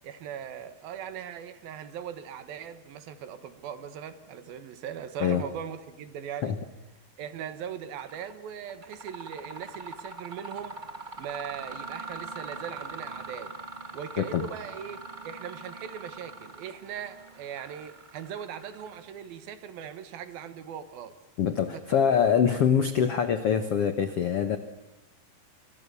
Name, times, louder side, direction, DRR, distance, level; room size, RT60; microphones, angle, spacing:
voice 1, 0.0-6.6 7.2-10.8 11.2-13.5 13.9-21.2 21.9-22.0, right 8 dB, 70° right, 11 dB, 3.2 m, -40 dB
Mechanisms, 8.0-8.3 8.7-19.2, right 3 dB, 45° right, 0.6 m, -42 dB
voice 2, 21.4-24.6, left 7 dB, 75° left, 10 dB, 1.4 m, -24 dB
29.0 x 26.0 x 7.0 m, 0.94 s
omnidirectional pair, 4.5 m